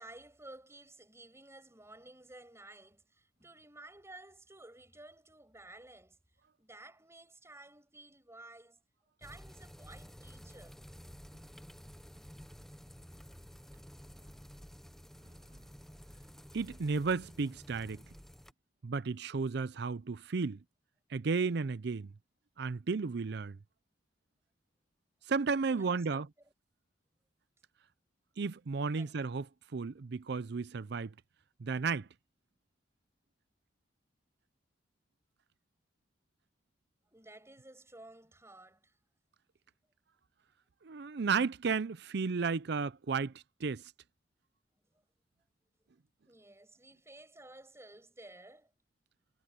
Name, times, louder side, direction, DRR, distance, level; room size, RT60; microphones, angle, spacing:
voice 1, 0.0-6.2 6.6-8.8 9.2-10.9 25.6-26.2 29.0-29.2 37.1-38.9 46.2-48.7, right 2 dB, 15° right, 8.0 m, -54 dB
sound 1, 9.2-18.5, equal, ahead, 0.7 m, -52 dB
voice 2, 16.5-18.0 18.8-20.6 21.1-22.1 22.6-23.6 25.3-26.3 28.4-29.5 29.7-31.1 31.6-32.1 40.8-43.3 43.6-43.8, right 4 dB, 60° right, 0.5 m, -33 dB
head